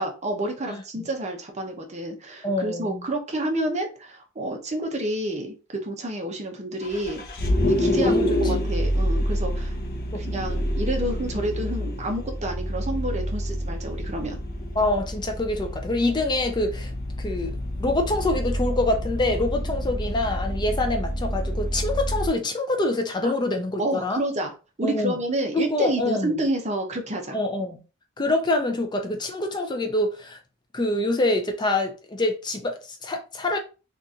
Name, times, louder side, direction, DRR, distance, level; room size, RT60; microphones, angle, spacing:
voice 1, 0.0-7.2 7.7-9.7 10.3-14.4 23.2-23.3 23.8-27.4, right 1 dB, 35° right, 0.7 m, -29 dB
voice 2, 0.7-1.1 2.4-3.0 8.0-8.4 10.1-10.2 14.8-16.9 17.2-24.2 24.8-25.2 25.5-26.3 27.3-27.8 28.2-30.4 30.7-33.6, left 2 dB, 20° left, 0.4 m, -25 dB
Vehicle, 6.8-22.3, equal, 50° left, 0.7 m, -27 dB
2.8 x 2.5 x 3.6 m
head